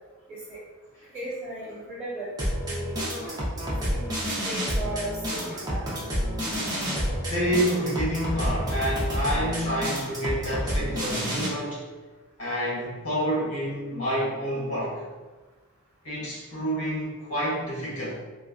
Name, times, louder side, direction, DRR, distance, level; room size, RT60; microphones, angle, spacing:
voice 1, 0.3-0.6 1.1-2.3 2.6-3.0 3.9-6.0, right 1 dB, 5° left, -19 dB, 1.2 m, -36 dB
sound 1, 2.4-11.5, equal, 15° right, 0.7 m, -29 dB
voice 2, 7.3-11.8 12.4-15.0 16.0-18.1, equal, 85° left, -7 dB, 1.3 m, -28 dB
3.3 x 2.5 x 2.4 m, 1.3 s
head